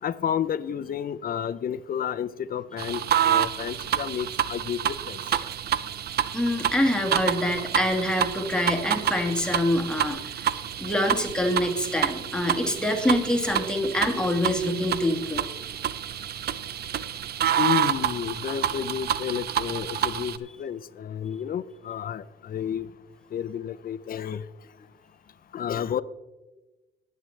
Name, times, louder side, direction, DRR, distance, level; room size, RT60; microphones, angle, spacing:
voice 1, 0.0-5.2 17.6-22.9 23.3-24.5 25.5-26.0, left 9 dB, 50° left, 15 dB, 0.6 m, -31 dB
sound 1, 2.8-20.4, right 10 dB, 55° right, 0.5 m, -28 dB
voice 2, 6.3-10.5 10.8-15.4, left 1 dB, 5° left, 2 dB, 1.7 m, -25 dB
19.0 x 7.6 x 3.3 m, 1.1 s
cardioid pair, 90°, 20 cm